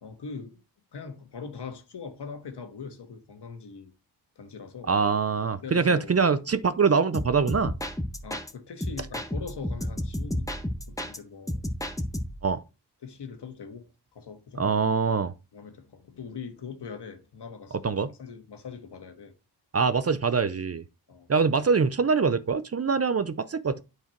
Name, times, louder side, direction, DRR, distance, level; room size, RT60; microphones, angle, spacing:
voice 1, 0.0-0.6 0.9-3.9 4.3-4.9 5.6-6.2 8.2-11.6 13.0-14.8 15.5-19.3 21.1-21.3, left 5 dB, 75° left, 1.7 m, -41 dB
voice 2, 4.9-7.7 12.4-12.6 14.6-15.3 17.8-18.1 19.7-20.8 21.3-23.8, right 5 dB, 35° right, 0.6 m, -24 dB
sound 1, 7.1-8.5 8.8-11.2 11.5-12.5, left 1 dB, 10° left, 1.4 m, -32 dB
8.8 x 4.8 x 4.5 m
cardioid pair, 80°, 41 cm